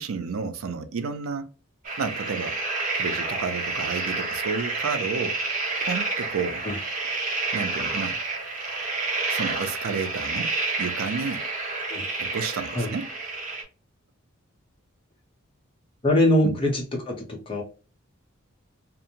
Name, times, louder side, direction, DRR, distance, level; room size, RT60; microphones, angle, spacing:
voice 1, 0.0-1.5 2.0-2.6 2.9-5.4 5.8-6.6 7.5-8.2 9.3-10.5 10.8-11.4 12.2-13.1 16.4-16.6, right 5 dB, 80° right, 0.4 m, -31 dB
sound 1, 1.8-13.6, right 3 dB, 40° right, 0.8 m, -29 dB
voice 2, 16.0-17.6, left 1 dB, 25° left, 0.8 m, -23 dB
2.6 x 2.1 x 2.8 m
head